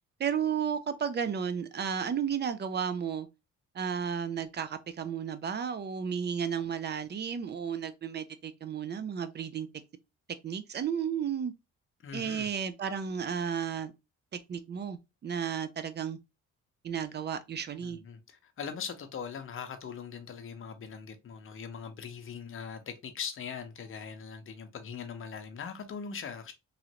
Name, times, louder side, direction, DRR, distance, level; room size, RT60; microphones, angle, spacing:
voice 1, 0.2-3.3 3.7-9.7 10.4-11.5 12.1-13.9 14.5-16.2 16.8-18.0, right 7 dB, 35° right, 0.5 m, -33 dB
voice 2, 12.0-12.5 17.8-26.5, left 6 dB, 45° left, 0.7 m, -41 dB
3.1 x 2.5 x 2.8 m
cardioid pair, 90°, 30 cm